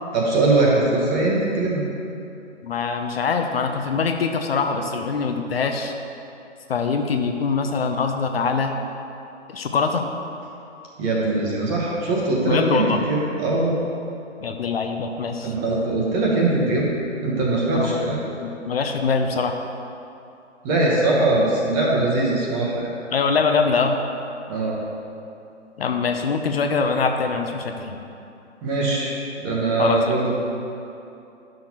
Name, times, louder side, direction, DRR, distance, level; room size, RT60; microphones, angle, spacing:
voice 1, 0.1-1.8 11.0-13.8 15.4-16.9 17.2-18.2 20.6-22.9 24.5-24.8 28.6-29.2 29.4-30.3, right 2 dB, 20° right, -3 dB, 1.0 m, -21 dB
voice 2, 2.6-5.9 6.7-8.7 9.5-10.1 12.4-13.0 14.4-15.5 17.7-18.1 18.4-19.6 23.1-24.0 25.8-28.0 29.8-30.0, left 5 dB, 55° left, 5 dB, 0.7 m, -23 dB
11.0 x 6.2 x 2.9 m, 2.7 s
hypercardioid pair, 145°, 37 cm